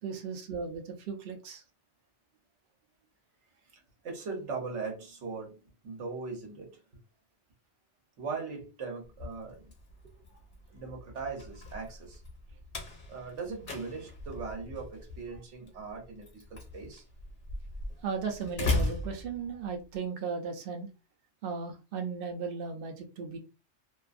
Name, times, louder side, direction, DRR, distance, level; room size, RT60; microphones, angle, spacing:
voice 1, 0.0-1.6 18.0-20.9 21.4-23.4, right 5 dB, 55° right, 0.7 m, -36 dB
voice 2, 3.6-6.8 8.2-9.7 10.7-12.2 13.1-17.0, right 4 dB, 85° right, 1.2 m, -40 dB
Slam, 9.0-19.9, left 3 dB, 50° left, 0.9 m, -38 dB
2.6 x 2.5 x 2.4 m
omnidirectional pair, 1.2 m